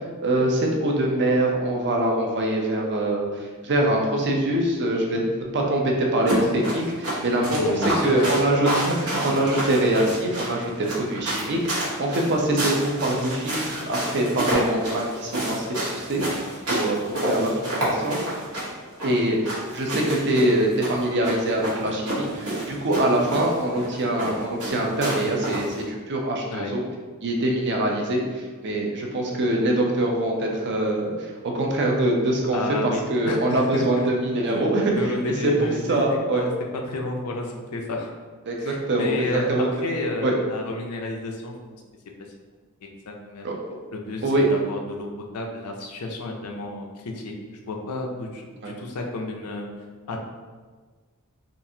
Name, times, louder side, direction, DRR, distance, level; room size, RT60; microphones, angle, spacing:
voice 1, 0.2-5.2 5.5-11.6 12.0-16.2 16.7-18.2 19.0-26.8 27.2-32.6 33.1-35.2 35.4-36.5 38.4-39.7 40.2-40.3 43.4-43.8 44.2-44.5 48.6-48.8, right 1 dB, 50° right, 0 dB, 0.6 m, -24 dB
sound 1, 6.3-25.8, right 1 dB, 80° right, 1.1 m, -29 dB
voice 2, 7.4-8.3 26.5-26.8 32.5-34.1 34.5-34.6 35.0-36.0 36.3-36.5 36.9-38.1 38.6-39.5 39.8-41.5 43.1-43.5 43.9-45.1 45.3-49.7 50.1-50.2, left 2 dB, 80° left, 1 dB, 0.5 m, -31 dB
3.8 x 2.4 x 2.7 m, 1.4 s
head